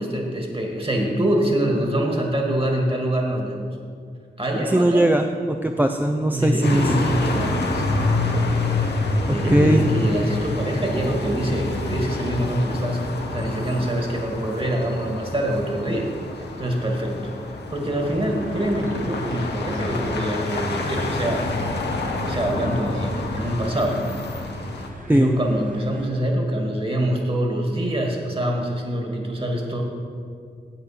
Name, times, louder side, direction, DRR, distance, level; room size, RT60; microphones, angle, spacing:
voice 1, 0.0-3.6 4.4-5.1 6.3-7.8 9.3-16.1 16.6-17.2 17.7-21.5 22.2-24.1 25.1-29.8, right 1 dB, 30° right, 1 dB, 2.2 m, -24 dB
voice 2, 4.6-7.1 9.5-9.8 25.1-25.3, right 1 dB, 10° right, 4 dB, 0.5 m, -19 dB
sound 1, 6.6-24.9, left 2 dB, 85° left, 1.1 m, -27 dB
sound 2, 18.0-26.1, right 1 dB, 50° right, 1.8 m, -44 dB
9.0 x 7.9 x 6.0 m, 2.3 s
cardioid pair, 50°, 17 cm